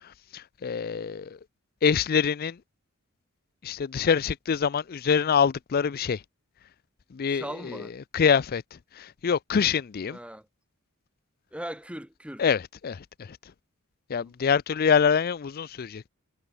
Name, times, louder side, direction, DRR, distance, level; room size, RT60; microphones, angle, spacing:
voice 1, 0.3-1.4 1.8-2.6 3.6-6.2 7.1-7.4 8.1-8.6 9.0-10.2 12.4-13.0 14.1-16.1, left 6 dB, 45° left, 0.4 m, -25 dB
voice 2, 7.3-7.9 10.1-10.5 11.5-12.4 14.1-14.3, right 1 dB, 5° right, 4.9 m, -39 dB
head